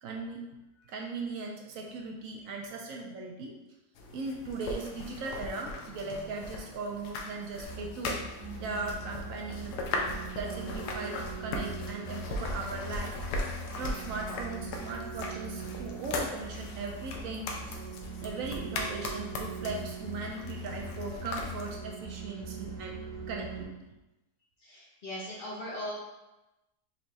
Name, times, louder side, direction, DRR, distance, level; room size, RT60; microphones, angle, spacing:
voice 1, 0.0-0.4 0.9-3.5 4.1-8.2 8.6-9.8 10.3-13.1 13.7-17.9 18.2-23.0 23.3-23.7, right 3 dB, 70° right, 0 dB, 0.8 m, -38 dB
sound 1, 3.9-21.8, left 2 dB, 75° left, 1.1 m, -39 dB
sound 2, 7.6-23.6, right 3 dB, 55° right, 1.3 m, -41 dB
voice 2, 24.6-25.9, left 1 dB, 50° left, -6 dB, 0.7 m, -39 dB
4.4 x 3.1 x 2.7 m, 1.0 s
omnidirectional pair, 1.8 m